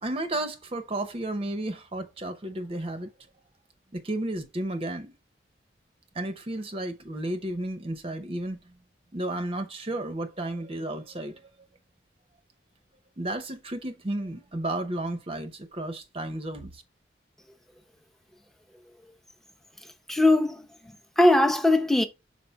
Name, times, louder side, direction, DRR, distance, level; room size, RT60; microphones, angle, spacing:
voice 1, 0.0-3.1 3.9-5.1 6.1-8.7 9.1-11.3 13.2-16.8, right 1 dB, 30° right, 0.7 m, -33 dB
voice 2, 20.1-22.0, left 1 dB, ahead, 0.7 m, -21 dB
5.7 x 4.8 x 3.5 m
head